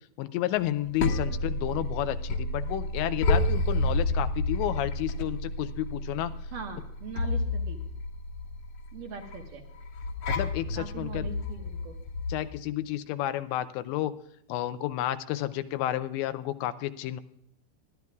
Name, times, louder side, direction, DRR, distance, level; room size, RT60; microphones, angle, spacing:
voice 1, 0.2-6.3 10.3-11.3 12.3-14.1 14.5-17.2, left 13 dB, 85° left, 12 dB, 2.9 m, -31 dB
sound 1, 0.6-12.5, left 2 dB, 55° left, 1.8 m, -30 dB
voice 2, 6.5-7.8 8.9-9.6 10.7-12.0, right 5 dB, 65° right, 3 dB, 2.3 m, -41 dB
22.0 x 12.0 x 2.3 m, 0.72 s
omnidirectional pair, 5.0 m